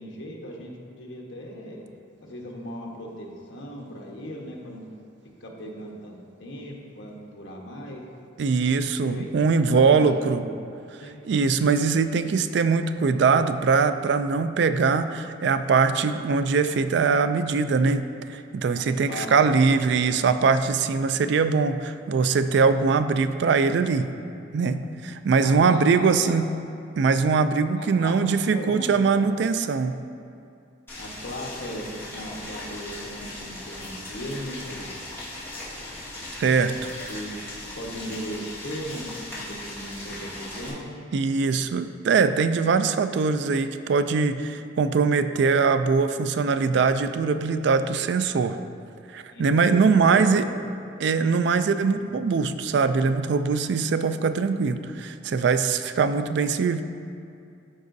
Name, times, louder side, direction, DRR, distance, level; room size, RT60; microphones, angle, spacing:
voice 1, 0.0-1.8 2.2-4.9 5.4-8.0 9.1-9.3 9.6-10.6 11.0-11.2 18.7-19.9 25.4-26.4 27.7-28.1 28.5-29.3 31.0-34.9 37.1-37.4 37.7-40.9 49.3-50.5 51.9-52.1, equal, 75° left, -1 dB, 1.1 m, -37 dB
voice 2, 8.4-10.4 11.2-24.1 24.5-26.5 27.0-30.0 36.4-36.8 41.1-48.6 49.1-50.5 51.0-56.8, right 5 dB, 65° right, 11 dB, 0.3 m, -22 dB
Boiling, 30.9-40.7, left 1 dB, 10° left, 1.7 m, -38 dB
13.5 x 4.8 x 2.7 m, 2.5 s
head